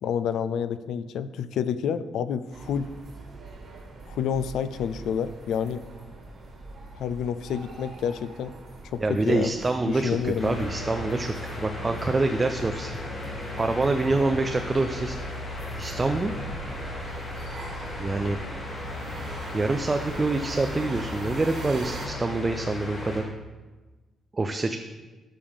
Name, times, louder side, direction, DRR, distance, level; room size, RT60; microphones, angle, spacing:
voice 1, 0.0-2.9 4.1-5.8 7.0-8.5 8.9-9.6 9.8-10.7, left 7 dB, 80° left, 13 dB, 0.4 m, -29 dB
sound 1, 2.5-22.1, right 2 dB, 45° right, 1.3 m, -41 dB
voice 2, 9.0-12.9 13.6-15.2 15.8-16.3 18.0-18.4 19.5-23.3 24.3-24.8, right 3 dB, 15° right, 6 dB, 0.3 m, -26 dB
sound 2, 10.4-23.2, left 2 dB, 30° left, 2.1 m, -36 dB
12.0 x 5.5 x 3.5 m, 1.2 s
cardioid pair, 180°, 0 cm